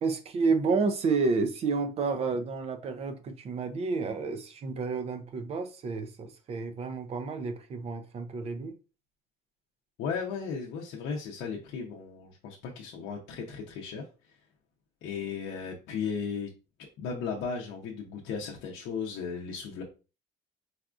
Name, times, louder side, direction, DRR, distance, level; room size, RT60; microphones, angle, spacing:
voice 1, 0.0-8.8, right 4 dB, 30° right, 0.4 m, -30 dB
voice 2, 10.0-14.0 15.0-16.5 17.0-19.8, left 6 dB, 65° left, 0.6 m, -35 dB
4.1 x 2.3 x 2.4 m
cardioid pair, 165°, 20 cm